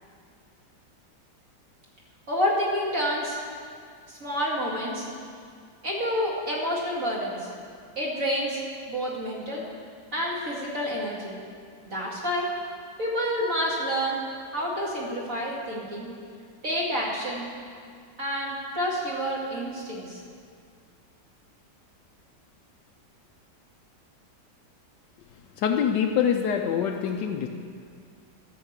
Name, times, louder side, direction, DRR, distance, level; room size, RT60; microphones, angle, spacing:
voice 1, 2.3-3.4 4.1-5.1 5.8-7.5 8.0-8.6 8.9-9.6 10.1-11.4 11.9-12.5 13.0-14.2 14.5-16.1 16.6-17.5 18.2-20.2, equal, 50° right, -4 dB, 2.6 m, -28 dB
voice 2, 25.6-27.5, left 8 dB, 80° left, 4 dB, 1.2 m, -25 dB
13.0 x 6.5 x 7.4 m, 2.2 s
omnidirectional pair, 1.9 m